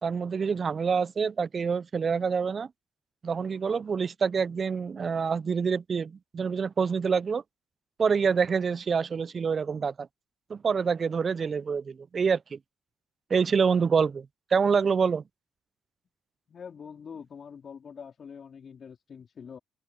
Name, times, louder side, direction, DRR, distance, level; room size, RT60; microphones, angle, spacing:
voice 1, 0.0-2.7 3.2-7.4 8.0-10.1 10.5-12.6 13.3-15.2, right 6 dB, 45° right, 1.0 m, -26 dB
voice 2, 16.5-19.6, left 6 dB, 50° left, 4.5 m, -44 dB
hypercardioid pair, 45°, 0 cm